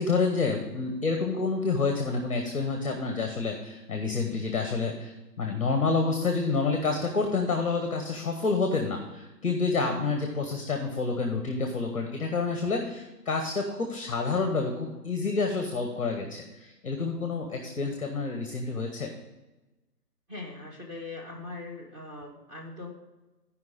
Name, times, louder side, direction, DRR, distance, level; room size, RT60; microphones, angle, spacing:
voice 1, 0.0-19.1, left 4 dB, 20° left, 4 dB, 0.9 m, -28 dB
voice 2, 20.3-22.9, left 3 dB, 20° right, 0 dB, 1.7 m, -40 dB
13.0 x 5.1 x 4.9 m, 1.1 s
figure-of-eight pair, 145°, 49 cm